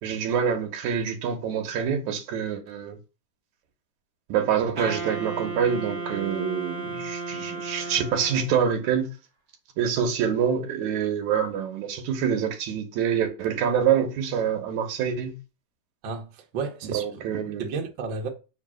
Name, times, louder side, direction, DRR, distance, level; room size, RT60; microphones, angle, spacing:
voice 1, 0.0-3.0 4.3-9.1 9.8-15.4 16.9-17.7, right 8 dB, 65° right, 2.1 m, -26 dB
Wind instrument woodwind instrument, 4.8-8.6, right 4 dB, 45° right, 1.1 m, -34 dB
voice 2, 16.0-17.2 17.6-18.3, right 4 dB, 85° right, 1.0 m, -32 dB
7.5 x 3.3 x 6.2 m
omnidirectional pair, 4.2 m